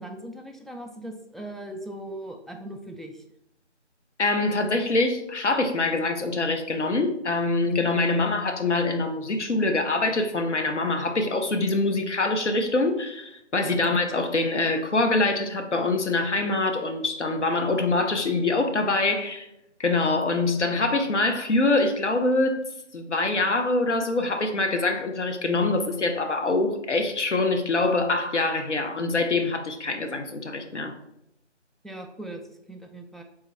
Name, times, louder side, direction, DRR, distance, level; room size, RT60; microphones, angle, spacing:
voice 1, 0.0-3.2 31.8-33.2, right 1 dB, ahead, 2 dB, 0.3 m, -39 dB
voice 2, 4.2-19.5 19.8-22.6 22.9-30.9, left 2 dB, 70° left, 5 dB, 0.7 m, -24 dB
3.6 x 2.6 x 4.1 m, 0.80 s
figure-of-eight pair, 175°, 36 cm